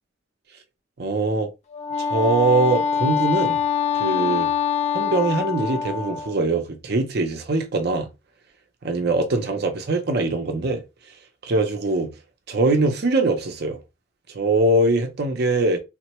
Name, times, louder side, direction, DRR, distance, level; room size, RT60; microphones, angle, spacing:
voice 1, 1.0-1.5 2.0-3.6 4.0-4.5 4.9-8.1 8.8-10.8 11.4-12.1 12.5-13.8 14.3-15.8, right 2 dB, 50° right, 0.5 m, -22 dB
Wind instrument woodwind instrument, 1.7-6.4, left 7 dB, 30° left, 0.3 m, -24 dB
3.5 x 2.1 x 2.9 m
head